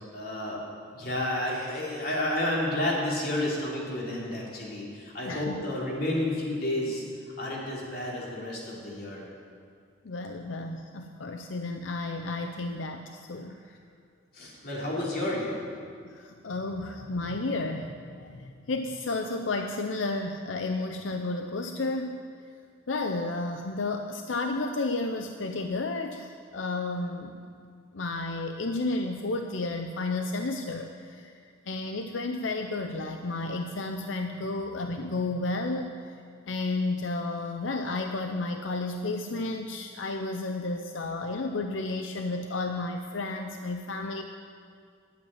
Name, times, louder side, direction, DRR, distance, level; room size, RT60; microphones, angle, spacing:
voice 1, 0.1-0.6 0.9-7.0 7.4-9.3 14.3-15.7, left 1 dB, 50° left, -4 dB, 3.4 m, -31 dB
voice 2, 5.3-5.6 10.0-13.6 16.0-22.2 22.9-27.3 27.9-36.1 36.5-44.2, left 2 dB, 85° left, 5 dB, 0.7 m, -32 dB
12.0 x 8.3 x 9.2 m, 2.2 s
head